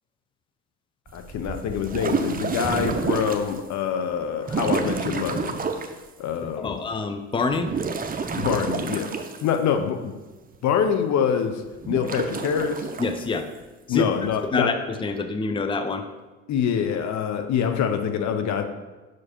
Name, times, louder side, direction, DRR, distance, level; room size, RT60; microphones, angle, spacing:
voice 1, 1.1-5.6 6.2-6.8 8.4-10.1 10.6-12.9 13.9-14.7 16.5-18.6, left 7 dB, 55° left, 7 dB, 0.8 m, -25 dB
sound 1, 1.1-3.6 4.4-6.0 7.5-9.8 11.8-13.2, right 5 dB, 25° right, 0.7 m, -29 dB
voice 2, 6.6-7.7 13.0-13.5 13.9-14.0 14.5-16.1, left 4 dB, 15° left, 8 dB, 0.6 m, -26 dB
6.1 x 4.9 x 4.3 m, 1.2 s
hypercardioid pair, 65°, 34 cm